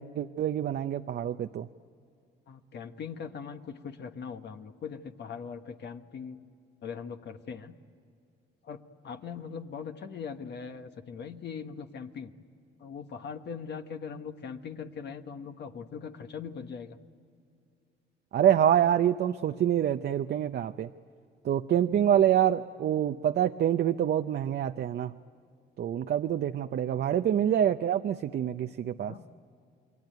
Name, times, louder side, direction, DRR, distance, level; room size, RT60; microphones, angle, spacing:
voice 1, 0.0-1.7 18.3-20.9 21.4-25.1 25.8-29.1, right 10 dB, 55° right, 8 dB, 0.6 m, -26 dB
voice 2, 2.5-6.4 6.8-7.7 8.6-12.3 12.8-17.0 21.9-22.1 29.1-29.2, left 6 dB, 60° left, 6 dB, 1.4 m, -40 dB
28.0 x 22.0 x 9.2 m, 2.4 s
cardioid pair, 90°, 20 cm